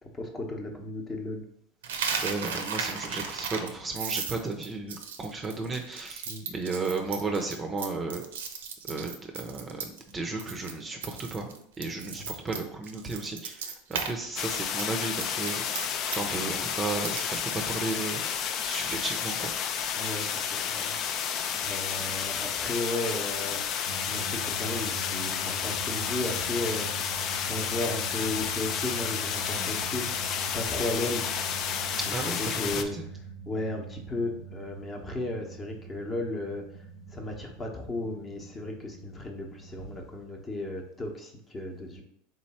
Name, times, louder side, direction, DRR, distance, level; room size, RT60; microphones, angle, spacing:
voice 1, 0.0-1.5 6.3-6.4 12.0-12.2 19.9-21.3 21.6-23.6 24.1-31.3 32.1-33.0 33.5-42.0, left 2 dB, 25° left, 2 dB, 0.9 m, -35 dB
Coin (dropping), 1.8-10.1 10.4-10.7 11.0-14.1 14.4-17.5, right 6 dB, 90° right, 0.6 m, -35 dB
voice 2, 2.1-8.2 8.8-19.5 32.1-33.1, right 3 dB, 20° right, 3 dB, 0.6 m, -34 dB
sound 1, 14.4-32.8, left 8 dB, 45° left, 0.4 m, -31 dB
sound 2, 23.9-40.0, right 5 dB, 70° left, 0.7 m, -43 dB
3.9 x 3.1 x 4.2 m, 0.70 s
supercardioid pair, 115°, 0 cm